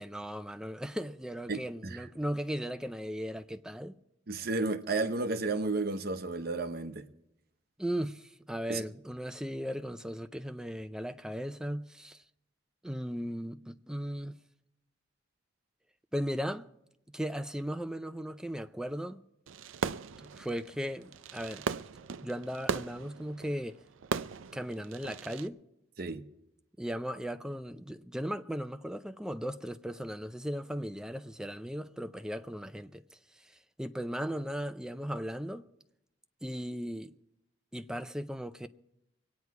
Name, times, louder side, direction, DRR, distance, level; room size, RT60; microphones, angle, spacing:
voice 1, 0.0-4.0 7.8-12.2 12.8-14.4 16.1-16.7 17.1-19.2 20.2-21.6 22.2-23.8 24.5-25.6 26.8-33.5 33.8-35.6 36.4-37.1 37.7-38.7, equal, 5° right, 0.4 m, -37 dB
voice 2, 1.5-2.1 4.3-7.1 8.7-8.8 26.0-26.2, right 3 dB, 50° right, 0.9 m, -32 dB
Fireworks, 19.5-25.5, right 5 dB, 85° right, 0.5 m, -38 dB
24.5 x 9.5 x 4.7 m
head